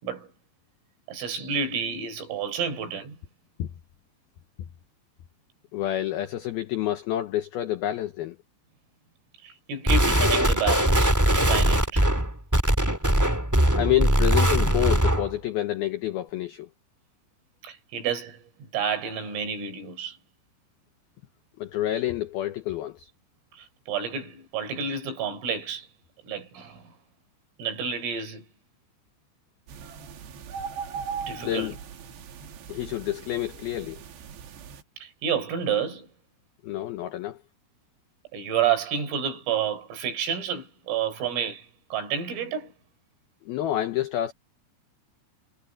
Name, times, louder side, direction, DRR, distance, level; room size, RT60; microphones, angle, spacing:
voice 1, 1.1-3.2 9.4-12.1 17.6-20.2 23.6-25.9 26.2-26.9 27.6-28.4 31.3-31.8 35.0-36.1 38.3-42.7, right 7 dB, 85° right, 7.0 m, -30 dB
voice 2, 5.7-8.4 13.7-16.7 21.6-23.1 31.4-31.8 32.7-34.0 36.6-37.4 43.5-44.3, left 13 dB, 85° left, 2.1 m, -28 dB
sound 1, 9.9-15.3, right 1 dB, 10° right, 1.0 m, -21 dB
sound 2, 29.7-34.8, right 6 dB, 65° right, 4.1 m, -39 dB
omnidirectional pair, 5.7 m